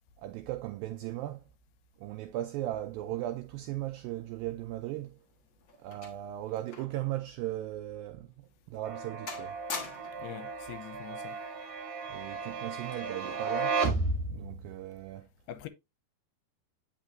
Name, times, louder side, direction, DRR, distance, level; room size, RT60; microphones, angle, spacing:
voice 1, 0.2-1.5 2.0-5.2 5.8-8.3 8.7-9.6 12.1-13.9 14.2-15.3, right 14 dB, 90° right, 2.0 m, -37 dB
sound 1, 5.0-7.1 7.4-7.5 8.2-8.3 8.7-9.0 9.3-10.3 11.3-11.6, left 5 dB, 65° left, 1.2 m, -43 dB
sound 2, 8.8-14.8, right 4 dB, 55° right, 2.5 m, -34 dB
voice 2, 10.2-11.4 15.5-15.7, left 11 dB, 90° left, 2.7 m, -43 dB
9.0 x 5.8 x 2.5 m
omnidirectional pair, 4.6 m